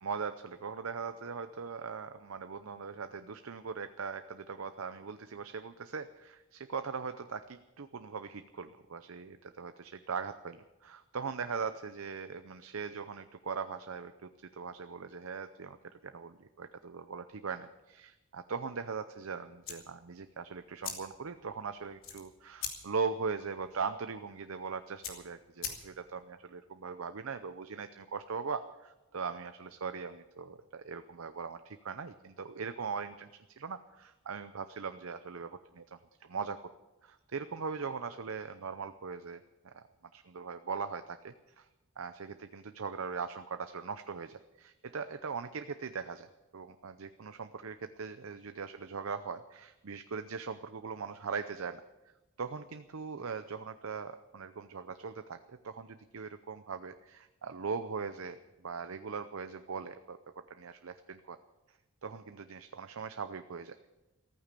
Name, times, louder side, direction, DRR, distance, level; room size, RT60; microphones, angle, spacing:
voice 1, 0.0-15.8 16.0-33.3 33.6-36.7 37.0-39.9 40.1-41.7 42.0-46.3 46.5-51.8 52.4-60.2 60.5-61.4 62.0-63.9, right 5 dB, 80° right, 10 dB, 0.7 m, -40 dB
sound 1, 19.6-26.2, left 7 dB, 70° left, 2.9 m, -45 dB
15.0 x 14.0 x 6.8 m, 1.0 s
head